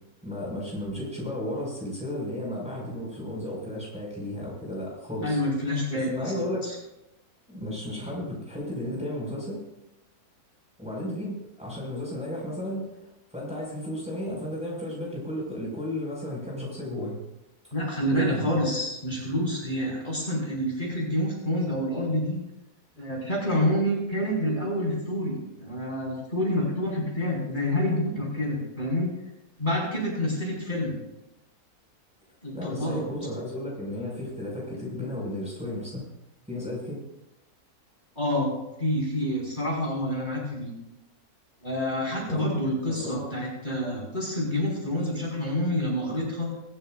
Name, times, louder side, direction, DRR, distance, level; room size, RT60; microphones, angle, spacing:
voice 1, 0.2-5.4 6.1-6.7 7.5-9.6 10.8-17.2 18.1-18.6 32.5-36.0 36.5-37.0 42.3-42.5 42.9-43.3, left 1 dB, 5° right, -4 dB, 5.4 m, -33 dB
voice 2, 5.2-6.8 17.7-22.4 23.0-29.1 29.6-30.9 32.4-33.0 38.2-38.5 38.8-40.7 41.6-46.5, left 1 dB, 30° left, -4 dB, 5.5 m, -28 dB
24.0 x 14.5 x 2.5 m, 0.90 s
omnidirectional pair, 1.6 m